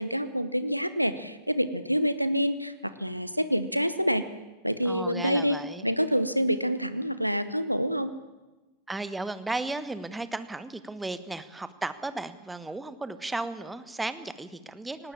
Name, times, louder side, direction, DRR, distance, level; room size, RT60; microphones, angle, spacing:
voice 1, 0.0-4.2 4.6-8.1, equal, 90° right, 12 dB, 1.0 m, -27 dB
voice 2, 4.8-5.8 8.9-15.1, right 2 dB, 10° right, 13 dB, 1.3 m, -35 dB
18.5 x 18.5 x 8.7 m, 1.1 s
figure-of-eight pair, 90°, 0 cm